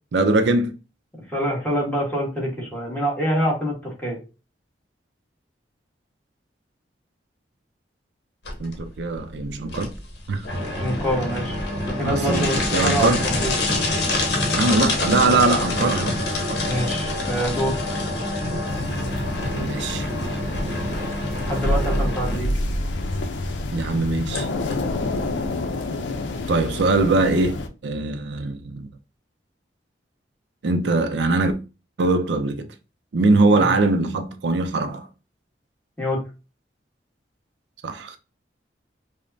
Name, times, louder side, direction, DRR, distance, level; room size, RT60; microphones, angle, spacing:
voice 1, 0.1-0.7 8.6-9.9 10.3-10.4 12.0-13.2 14.5-16.2 19.5-20.1 20.6-21.2 23.7-24.5 26.5-28.9 30.6-31.5 32.0-32.7 33.1-35.1 37.8-38.2, right 2 dB, 70° right, 0.4 m, -22 dB
voice 2, 1.3-4.2 10.8-11.6 11.9-13.5 16.6-17.8 21.4-22.5 33.5-33.7 36.0-36.2, equal, 10° left, 1.3 m, -26 dB
sound 1, 8.5-25.5, left 1 dB, 60° left, 0.9 m, -26 dB
sound 2, 18.7-27.7, left 2 dB, 85° left, 0.5 m, -28 dB
5.0 x 2.1 x 2.6 m
head